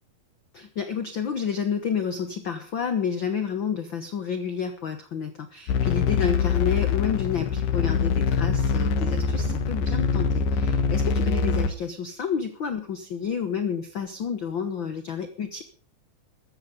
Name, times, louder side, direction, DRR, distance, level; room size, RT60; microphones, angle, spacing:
voice 1, 0.5-15.6, left 7 dB, 55° left, 9 dB, 1.4 m, -30 dB
sound 1, 5.7-11.7, left 5 dB, 85° left, 3.0 m, -24 dB
14.0 x 14.0 x 5.3 m, 0.43 s
omnidirectional pair, 3.8 m